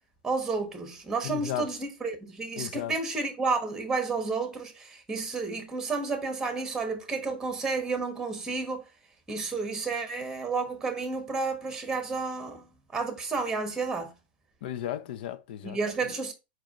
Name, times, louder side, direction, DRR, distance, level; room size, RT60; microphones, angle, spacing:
voice 1, 0.2-8.9 9.3-14.1 15.6-16.3, right 4 dB, 10° right, 1.1 m, -31 dB
voice 2, 1.2-1.7 2.6-2.9 14.6-15.8, left 11 dB, 60° left, 0.6 m, -34 dB
4.7 x 4.4 x 2.4 m
hypercardioid pair, 115°, 6 cm